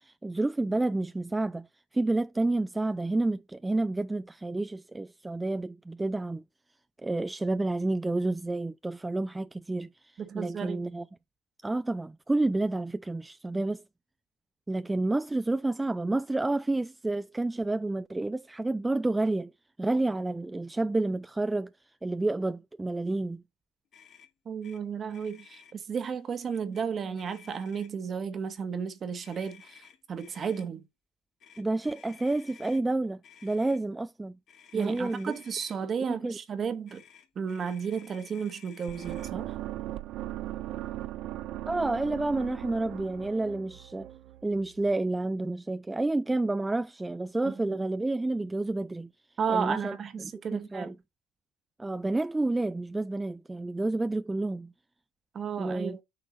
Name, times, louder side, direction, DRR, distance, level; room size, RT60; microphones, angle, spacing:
voice 1, 0.0-1.7 1.9-6.4 7.0-11.0 11.6-13.8 14.7-19.5 19.8-21.7 22.0-23.4 31.6-34.4 34.7-35.3 36.1-36.4 41.7-44.1 44.4-49.1 49.5-51.0 51.8-54.7 55.6-56.0, right 2 dB, 15° right, 0.5 m, -30 dB
voice 2, 10.2-10.8 24.4-30.8 34.7-37.0 37.3-39.6 47.4-47.8 49.4-50.9 55.3-56.0, right 6 dB, 40° right, 1.5 m, -33 dB
Motor vehicle (road), 23.9-24.3 24.6-24.8 25.1-25.7 26.5-26.8 27.2-28.1 29.2-30.7 31.4-32.8 33.2-33.8 34.5-35.8 36.9-39.3, left 8 dB, 50° left, 2.5 m, -55 dB
sound 1, 38.9-44.9, right 14 dB, 60° right, 0.6 m, -38 dB
8.9 x 4.6 x 4.2 m
hypercardioid pair, 65°, 0 cm